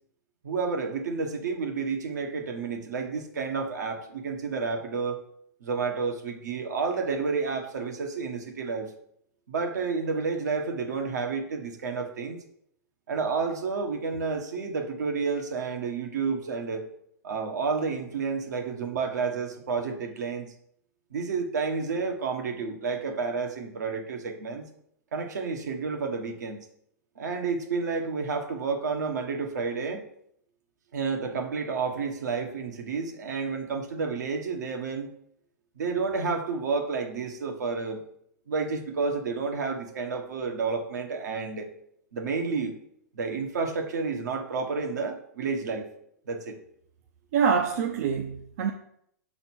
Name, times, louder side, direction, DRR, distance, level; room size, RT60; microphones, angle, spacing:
voice 1, 0.4-5.2 5.6-8.9 9.5-12.4 13.1-16.9 17.2-20.5 21.1-24.7 25.1-26.6 27.2-30.1 30.9-35.1 35.8-38.0 38.5-41.7 42.1-42.8 43.1-45.9 46.3-46.6, right 4 dB, 80° right, 4 dB, 1.4 m, -30 dB
voice 2, 47.3-48.7, right 6 dB, 60° right, 4 dB, 0.7 m, -25 dB
6.1 x 3.9 x 6.1 m, 0.71 s
hypercardioid pair, 130°, 9 cm